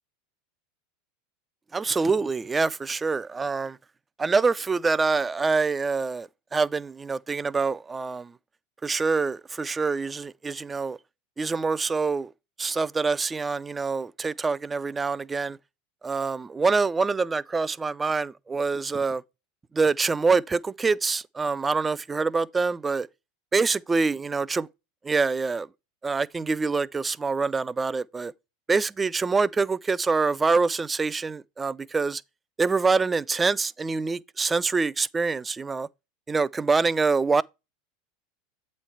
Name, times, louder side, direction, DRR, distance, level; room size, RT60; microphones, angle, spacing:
voice 1, 1.7-3.8 4.2-8.3 8.8-11.0 11.4-12.3 12.6-15.6 16.0-19.2 19.7-23.1 23.5-24.7 25.0-25.7 26.0-28.3 28.7-32.2 32.6-35.9 36.3-37.4, right 4 dB, 20° right, 0.3 m, -25 dB
8.1 x 3.2 x 5.6 m
hypercardioid pair, 90°, 0 cm